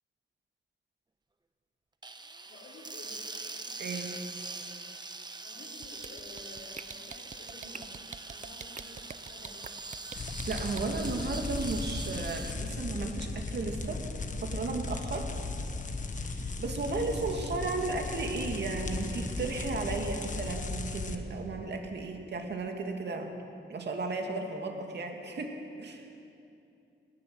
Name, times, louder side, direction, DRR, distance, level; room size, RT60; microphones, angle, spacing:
sound 1, 2.0-12.5, right 3 dB, 20° right, 1.0 m, -43 dB
voice 1, 2.4-3.8 5.2-8.0 8.3-9.7, left 2 dB, 70° left, -6 dB, 3.9 m, -52 dB
voice 2, 3.8-4.2 10.1-14.0 14.4-15.3 16.0-23.3 23.7-26.1, right 3 dB, 60° right, 3 dB, 2.6 m, -35 dB
sound 2, 5.8-10.8, right 6 dB, 35° right, 0.7 m, -43 dB
sound 3, 10.2-21.2, left 3 dB, 40° left, 1.3 m, -36 dB
20.5 x 19.5 x 7.9 m, 2.7 s
wide cardioid pair, 160°, 20 cm